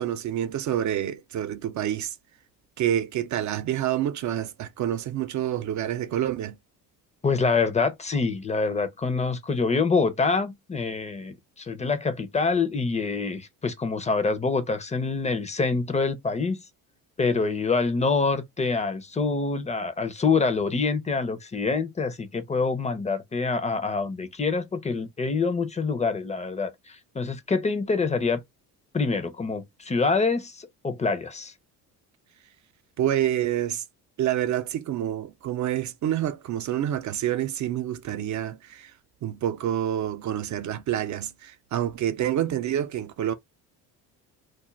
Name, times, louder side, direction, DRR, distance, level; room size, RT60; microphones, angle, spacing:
voice 1, 0.0-2.2 2.8-6.6 33.0-33.8 34.2-38.9 39.2-43.3, right 11 dB, 40° right, 0.4 m, -27 dB
voice 2, 7.2-16.6 17.2-28.4 28.9-31.5, left 4 dB, 15° left, 0.6 m, -26 dB
2.4 x 2.0 x 3.1 m
hypercardioid pair, 60°, 47 cm